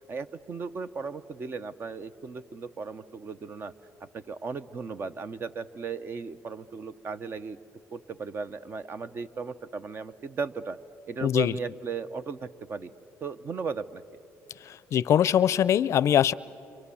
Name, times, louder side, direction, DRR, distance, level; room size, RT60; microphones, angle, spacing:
voice 1, 0.1-3.7 4.0-7.6 7.9-10.8 11.1-12.9 13.2-14.2, right 5 dB, 40° right, 12 dB, 0.9 m, -36 dB
voice 2, 11.2-11.5 14.7-16.3, left 10 dB, 55° left, 19 dB, 0.5 m, -22 dB
29.5 x 26.5 x 7.1 m, 2.8 s
cardioid pair, 95°, 6 cm